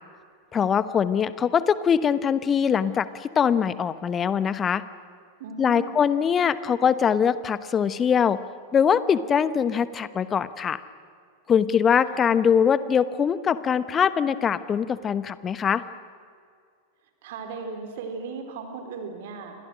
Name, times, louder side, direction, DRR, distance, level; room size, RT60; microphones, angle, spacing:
voice 1, 0.5-4.8 5.6-8.4 8.7-10.8 11.5-15.8, left 7 dB, 25° left, 15 dB, 1.0 m, -22 dB
voice 2, 5.4-6.0 12.1-12.4 17.2-19.6, right 5 dB, 55° right, 5 dB, 4.2 m, -37 dB
29.5 x 26.0 x 6.3 m, 2.2 s
figure-of-eight pair, 90°, 0 cm